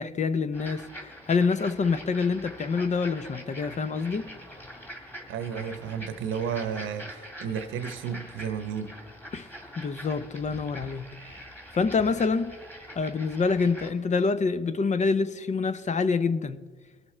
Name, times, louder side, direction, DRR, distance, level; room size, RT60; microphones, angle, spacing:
voice 1, 0.0-4.3 9.3-9.5 9.8-11.4 11.7-12.5 13.0-16.6, left 4 dB, 35° left, 0.7 m, -26 dB
sound 1, 0.5-13.9, equal, 10° left, 2.0 m, -44 dB
voice 2, 5.3-9.0, right 7 dB, 85° right, 1.0 m, -32 dB
20.0 x 6.9 x 4.3 m
cardioid pair, 90°, 20 cm